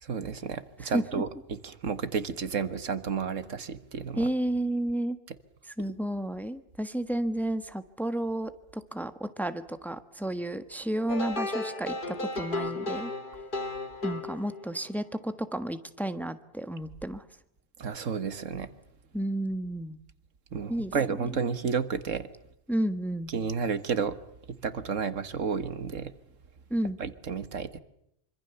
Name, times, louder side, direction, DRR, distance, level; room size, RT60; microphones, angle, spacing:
voice 1, 0.0-4.3 17.8-18.7 20.5-22.3 23.3-24.2 24.5-26.1 27.0-27.8, right 6 dB, 85° right, 12 dB, 1.8 m, -31 dB
voice 2, 0.8-1.2 4.2-5.2 5.8-13.1 14.0-17.2 19.1-20.0 20.7-20.9 21.2-21.3 22.7-23.3 26.7-27.0, right 1 dB, ahead, 10 dB, 1.3 m, -31 dB
sound 1, 11.1-14.9, left 2 dB, 40° left, 1.9 m, -34 dB
26.0 x 25.0 x 7.0 m, 0.77 s
omnidirectional pair, 1.3 m